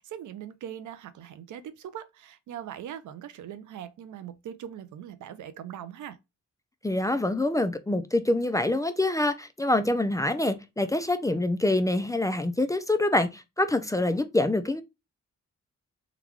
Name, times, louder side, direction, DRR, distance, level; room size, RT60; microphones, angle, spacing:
voice 1, 0.0-6.2, right 10 dB, 90° right, 0.5 m, -41 dB
voice 2, 6.8-14.8, left 2 dB, 10° left, 0.3 m, -25 dB
3.8 x 2.3 x 3.0 m
cardioid pair, 90°, 29 cm